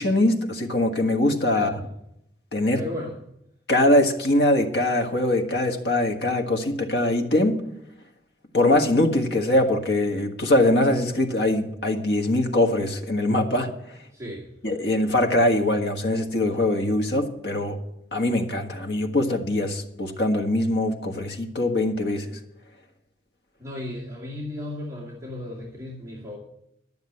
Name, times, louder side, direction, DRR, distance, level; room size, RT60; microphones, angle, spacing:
voice 1, 0.0-1.7 2.5-2.8 3.7-7.6 8.5-13.7 14.6-17.8 18.1-22.4, left 1 dB, 60° left, 4 dB, 1.6 m, -22 dB
voice 2, 2.8-3.2 14.1-14.5 23.6-26.4, left 1 dB, 15° right, -6 dB, 2.5 m, -35 dB
12.5 x 7.1 x 9.7 m, 0.79 s
head